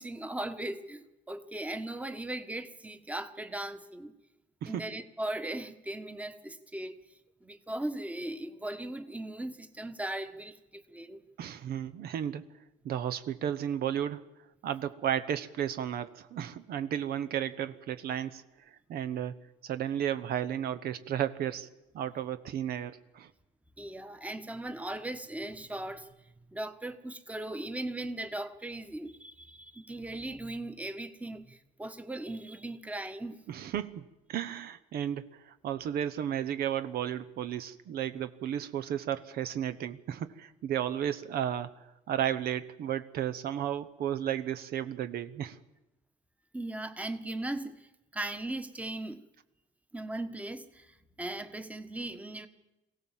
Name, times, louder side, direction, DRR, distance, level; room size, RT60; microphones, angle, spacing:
voice 1, 0.0-4.1 4.7-7.0 7.4-11.2 23.8-33.4 46.5-49.3 49.9-52.5, right 1 dB, 10° right, 1.3 m, -38 dB
voice 2, 11.4-12.4 12.8-14.3 14.6-18.4 18.9-19.4 19.6-23.3 33.5-41.7 42.1-45.6, right 10 dB, 65° right, 1.0 m, -33 dB
23.0 x 16.5 x 7.4 m
cardioid pair, 110°, 17 cm